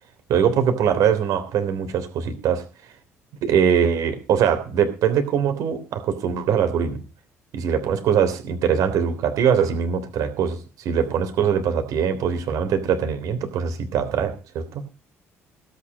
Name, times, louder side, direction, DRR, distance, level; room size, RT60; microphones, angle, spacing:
voice 1, 0.3-2.6 3.4-7.0 7.5-14.8, right 7 dB, 55° right, 8 dB, 3.3 m, -22 dB
17.0 x 9.4 x 5.3 m, 0.33 s
figure-of-eight pair, 50°, 7 cm